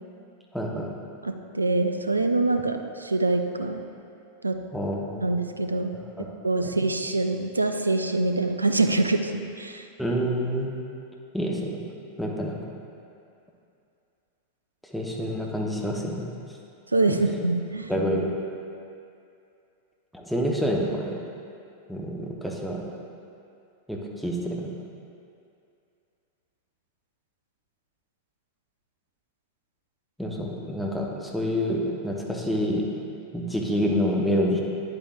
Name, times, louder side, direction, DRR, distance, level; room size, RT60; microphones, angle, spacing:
voice 1, 0.5-0.9 4.7-5.2 6.2-6.3 6.6-6.7 10.0-10.7 11.3-11.8 12.2-12.6 14.9-16.3 17.1-17.2 17.9-18.4 20.1-21.2 21.9-22.8 23.9-24.7 30.2-32.9 33.3-34.6, equal, ahead, -3 dB, 1.0 m, -27 dB
voice 2, 1.2-3.8 4.4-4.6 5.2-9.8 16.9-17.9, right 2 dB, 80° right, 7 dB, 0.4 m, -25 dB
9.4 x 8.4 x 2.5 m, 2.5 s
figure-of-eight pair, 90°, 0 cm